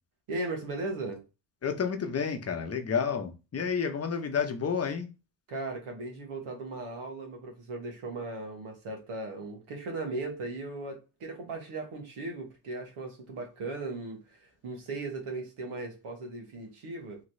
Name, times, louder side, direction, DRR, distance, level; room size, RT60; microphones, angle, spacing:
voice 1, 0.3-1.2 5.5-17.2, right 2 dB, 85° right, 1.2 m, -37 dB
voice 2, 1.6-5.1, left 6 dB, 30° left, 0.7 m, -30 dB
3.0 x 3.0 x 2.6 m
cardioid pair, 70°, 49 cm